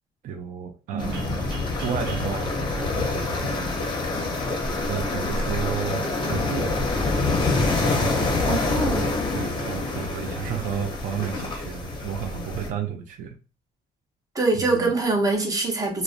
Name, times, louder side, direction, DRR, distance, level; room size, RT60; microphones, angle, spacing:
voice 1, 0.2-3.7 4.9-6.7 7.9-8.3 9.3-13.4 14.6-14.9, right 8 dB, 50° right, 0.4 m, -32 dB
sound 1, 1.0-12.7, left 3 dB, 30° left, 0.6 m, -26 dB
sound 2, 1.1-3.9, right 3 dB, 85° right, 0.8 m, -44 dB
voice 2, 8.5-9.1 14.3-16.0, right 3 dB, 20° right, 0.7 m, -24 dB
2.4 x 2.1 x 2.4 m
cardioid pair, 110°, 17 cm